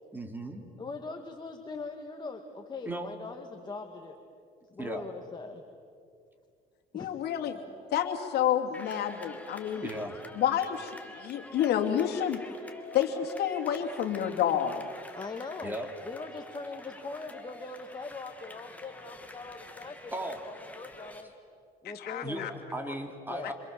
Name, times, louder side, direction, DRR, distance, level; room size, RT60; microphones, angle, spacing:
voice 1, 0.1-0.6 2.8-3.1 4.8-5.1 9.8-10.1 15.6-15.9 20.1-20.5 22.2-23.5, right 1 dB, 10° right, 4 dB, 3.1 m, -36 dB
voice 2, 0.8-4.2 4.7-5.6 6.9-7.1 7.5-7.6 9.8-10.0 15.1-15.8 16.0-21.3 21.8-22.5 23.3-23.5, left 3 dB, 25° left, 3 dB, 2.0 m, -41 dB
voice 3, 6.9-7.6 7.9-9.9 10.3-12.4 12.9-14.9 21.8-22.5 22.8-22.9, left 9 dB, 75° left, 3 dB, 2.7 m, -29 dB
sound 1, 8.7-21.2, left 2 dB, 10° left, 2.7 m, -48 dB
27.5 x 27.0 x 7.7 m, 2.3 s
cardioid pair, 110°, 17 cm